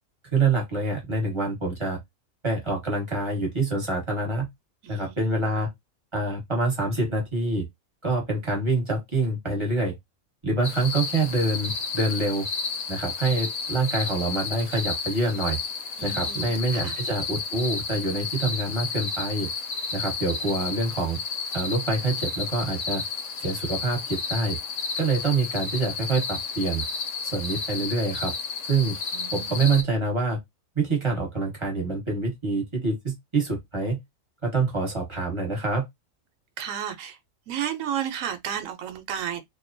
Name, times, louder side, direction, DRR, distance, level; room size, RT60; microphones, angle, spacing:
voice 1, 0.3-2.0 2.4-4.5 4.9-5.7 6.1-7.6 8.0-10.0 10.4-12.5 12.9-15.6 16.0-19.5 19.9-21.2 21.5-23.0 23.4-24.6 25.0-26.8 27.3-28.3 28.7-29.0 29.3-30.4 30.7-34.0 34.4-35.9, right 3 dB, 25° right, 1.1 m, -26 dB
voice 2, 4.8-5.5 16.0-17.0 29.1-29.6 36.6-37.2 37.5-39.4, right 9 dB, 85° right, 1.0 m, -33 dB
sound 1, 10.6-29.8, left 4 dB, 75° left, 1.0 m, -32 dB
2.8 x 2.1 x 2.5 m
omnidirectional pair, 1.4 m